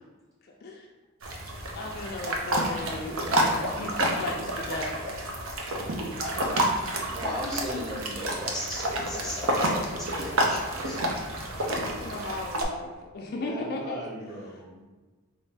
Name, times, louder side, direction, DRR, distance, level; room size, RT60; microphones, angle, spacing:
voice 1, 0.4-0.9 1.7-5.3 7.0-7.2 11.4-14.0, left 2 dB, 45° left, 0 dB, 0.3 m, -37 dB
sound 1, 1.2-12.6, right 1 dB, 70° right, 0.6 m, -29 dB
voice 2, 7.1-11.1, left 1 dB, ahead, -7 dB, 0.8 m, -36 dB
voice 3, 13.2-14.8, right 1 dB, 15° right, -8 dB, 1.3 m, -39 dB
4.2 x 2.5 x 3.3 m, 1.3 s
head